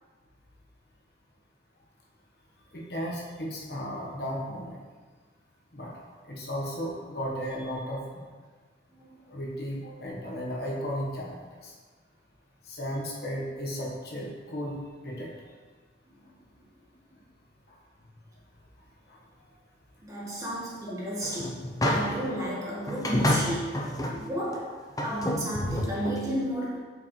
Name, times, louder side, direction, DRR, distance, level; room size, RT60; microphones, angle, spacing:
voice 1, 2.7-4.8 5.7-5.9 6.3-8.3 9.3-11.4 11.6-11.7 12.7-15.3 19.1-19.2, equal, 55° left, -3 dB, 1.2 m, -34 dB
voice 2, 20.0-23.8 24.1-26.8, right 1 dB, 20° right, -6 dB, 1.4 m, -33 dB
sound 1, 21.2-22.3 22.9-24.2 24.5-24.6 25.0-26.2, left 1 dB, 20° left, 0.6 m, -28 dB
8.1 x 5.0 x 3.2 m, 1.4 s
head